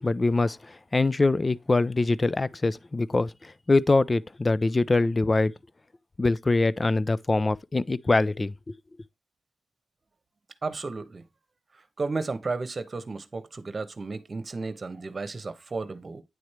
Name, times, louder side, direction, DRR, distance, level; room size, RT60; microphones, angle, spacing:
voice 1, 0.0-5.5 6.2-8.5, left 3 dB, 35° left, 0.4 m, -24 dB
voice 2, 10.6-11.2 12.0-16.2, right 3 dB, 50° right, 1.0 m, -33 dB
9.4 x 3.2 x 4.3 m
cardioid pair, 55°, 0 cm